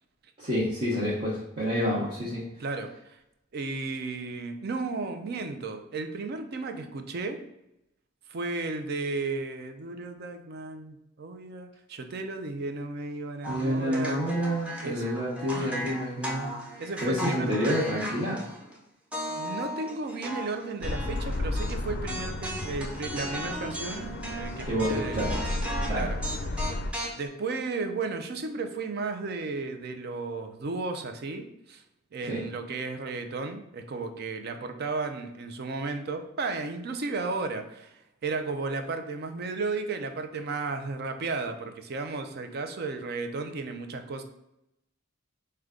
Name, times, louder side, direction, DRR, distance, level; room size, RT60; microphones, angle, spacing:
voice 1, 0.4-2.4 13.5-16.6 17.0-18.4 24.6-25.4 25.9-26.1 32.2-32.4, equal, 35° right, -9 dB, 1.0 m, -28 dB
voice 2, 2.6-3.2 3.5-7.4 8.3-14.3 14.8-15.2 15.5-15.8 16.8-17.8 19.3-25.2 25.9-26.2 27.2-31.8 32.1-44.2, right 3 dB, 50° right, 7 dB, 0.5 m, -34 dB
sound 1, 13.4-18.8 19.1-21.8 22.1-27.3, equal, 5° right, 0.6 m, -37 dB
sound 2, 20.8-26.9, left 2 dB, 55° left, 0.4 m, -33 dB
4.8 x 2.2 x 3.6 m, 0.85 s
head